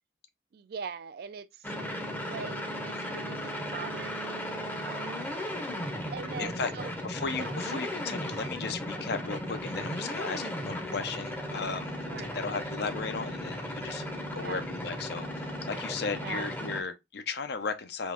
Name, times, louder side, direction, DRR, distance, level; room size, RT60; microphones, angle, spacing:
voice 1, 0.5-2.0 2.3-5.4 6.1-7.0 7.4-7.6 12.1-12.4 14.3-14.6 16.2-16.6, right 6 dB, 55° right, 0.3 m, -42 dB
sound 1, 1.6-16.8, equal, 10° left, 0.6 m, -36 dB
voice 2, 6.4-6.7 7.0-12.0 12.3-18.1, left 5 dB, 60° left, 0.6 m, -35 dB
3.7 x 2.9 x 2.3 m
head